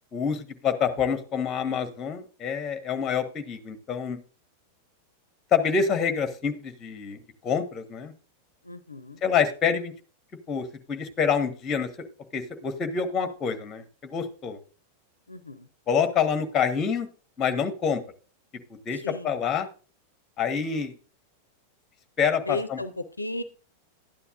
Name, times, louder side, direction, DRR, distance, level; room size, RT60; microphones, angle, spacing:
voice 1, 0.1-4.2 5.5-7.2 7.4-8.1 9.2-9.9 10.5-12.1 12.3-14.6 15.9-17.1 17.4-18.0 18.8-19.7 20.4-20.9 22.2-22.8, left 6 dB, 25° left, 9 dB, 1.3 m, -27 dB
voice 2, 8.6-9.2 15.3-15.7 18.9-19.3 22.5-23.4, left 2 dB, 85° left, 12 dB, 0.6 m, -35 dB
12.5 x 9.8 x 2.5 m, 0.38 s
figure-of-eight pair, 90°, 0 cm